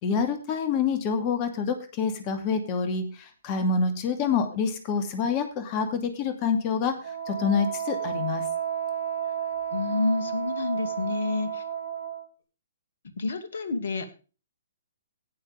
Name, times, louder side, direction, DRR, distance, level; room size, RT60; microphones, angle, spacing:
voice 1, 0.0-7.0 7.3-8.4, left 5 dB, 30° left, 7 dB, 2.5 m, -27 dB
Wind instrument woodwind instrument, 7.0-12.3, right 9 dB, 70° right, 3.0 m, -32 dB
voice 2, 9.7-11.6 13.2-14.1, left 3 dB, 60° left, 9 dB, 2.4 m, -28 dB
17.5 x 6.6 x 3.5 m, 0.34 s
figure-of-eight pair, 125°, 0 cm